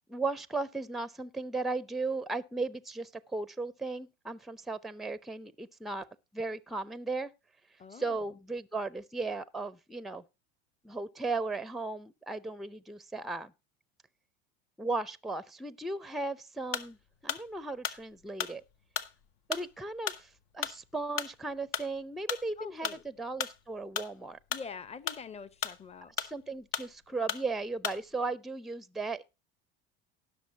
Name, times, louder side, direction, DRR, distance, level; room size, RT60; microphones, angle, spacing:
voice 1, 0.1-6.1 6.3-7.3 7.9-10.2 10.8-13.5 14.8-17.0 17.2-18.6 19.5-24.4 26.2-29.2, right 3 dB, ahead, 0.6 m, -36 dB
voice 2, 7.8-8.3 22.6-23.0 24.5-26.1, left 6 dB, 20° left, 0.9 m, -45 dB
sound 1, 16.6-16.9 17.3-22.5 22.8-24.1 24.4-25.9 26.2-26.9 27.3-27.5 27.8-28.0, left 9 dB, 60° left, 1.1 m, -36 dB
18.5 x 6.3 x 2.9 m
supercardioid pair, 110°, 29 cm